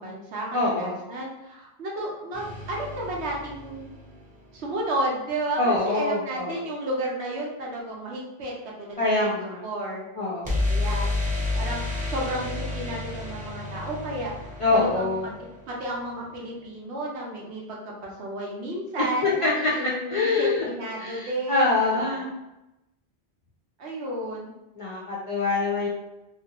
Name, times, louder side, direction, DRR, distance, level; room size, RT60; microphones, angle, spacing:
voice 1, 0.0-3.9 4.5-10.1 10.7-11.1 11.5-15.1 15.7-22.3 23.8-24.5, right 1 dB, 85° right, -2 dB, 1.0 m, -32 dB
voice 2, 0.5-1.1 5.6-6.7 9.0-9.6 10.2-10.7 14.6-15.3 19.2-20.7 21.0-22.3 24.8-25.9, left 3 dB, 45° left, -5 dB, 0.4 m, -25 dB
sound 1, 2.3-4.4 10.5-16.2, left 2 dB, 10° right, 0.5 m, -31 dB
2.6 x 2.4 x 2.9 m, 0.92 s
omnidirectional pair, 1.1 m